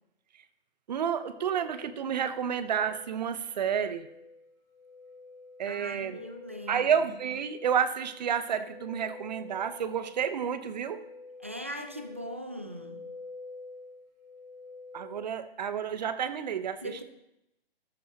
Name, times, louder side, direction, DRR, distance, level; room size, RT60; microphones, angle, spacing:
voice 1, 0.9-4.1 5.6-6.2 6.7-11.0 14.9-16.8, right 8 dB, 45° right, 11 dB, 0.9 m, -30 dB
sound 1, 1.0-15.3, left 3 dB, 65° left, 3.7 m, -49 dB
voice 2, 5.7-6.9 11.4-13.1 16.8-17.0, equal, 15° right, 6 dB, 0.3 m, -40 dB
13.5 x 13.5 x 2.9 m, 0.86 s
hypercardioid pair, 160°, 31 cm